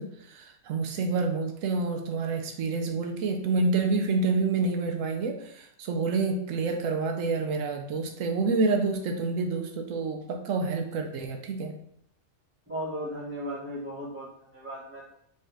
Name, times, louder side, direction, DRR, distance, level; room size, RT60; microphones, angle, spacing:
voice 1, 0.0-11.8, right 3 dB, 85° right, 4 dB, 1.0 m, -28 dB
voice 2, 12.7-15.1, equal, 10° right, -8 dB, 1.8 m, -36 dB
4.2 x 3.7 x 3.4 m, 0.71 s
omnidirectional pair, 1.3 m